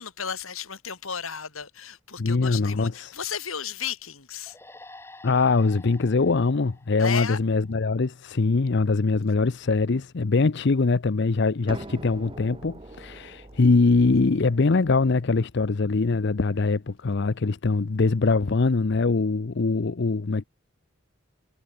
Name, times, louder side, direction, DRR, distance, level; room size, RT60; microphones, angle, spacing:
voice 1, 0.0-4.6 7.0-7.4, left 7 dB, 75° left, 3.4 m, -33 dB
voice 2, 2.2-3.1 5.2-20.4, left 3 dB, 55° left, 0.6 m, -23 dB
sound 1, 4.5-7.9, left 2 dB, 10° left, 2.1 m, -49 dB
sound 2, 11.7-17.3, right 1 dB, 25° right, 1.1 m, -45 dB
head